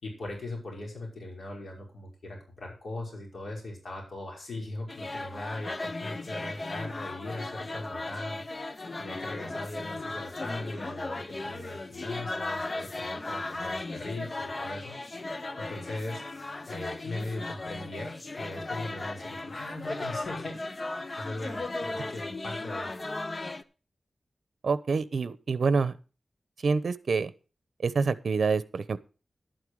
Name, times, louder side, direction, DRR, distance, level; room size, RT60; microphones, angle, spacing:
voice 1, 0.0-8.4 9.0-15.0 15.6-16.2 16.7-22.9, left 2 dB, 65° left, -1 dB, 5.4 m, -39 dB
sound 1, 4.9-23.6, left 2 dB, 35° left, 0.7 m, -36 dB
voice 2, 24.6-25.9 26.6-27.3 27.8-29.0, right 4 dB, 65° right, 15 dB, 0.9 m, -26 dB
12.0 x 9.1 x 4.8 m, 0.34 s
wide cardioid pair, 125°, 0 cm